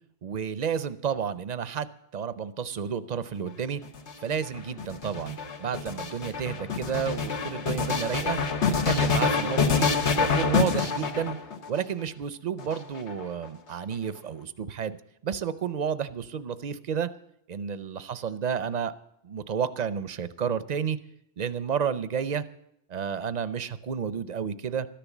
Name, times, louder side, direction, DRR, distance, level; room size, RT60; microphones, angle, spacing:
voice 1, 0.2-3.8 4.2-8.4 8.8-9.9 10.2-11.4 11.7-15.0 15.2-17.1 17.5-18.9 19.2-21.0 21.4-22.4 22.9-24.9, right 7 dB, 45° right, 15 dB, 0.7 m, -31 dB
sound 1, 3.8-11.8 12.6-13.5, left 5 dB, 80° left, 1.4 m, -26 dB
13.0 x 10.5 x 7.2 m, 0.75 s
omnidirectional pair, 1.1 m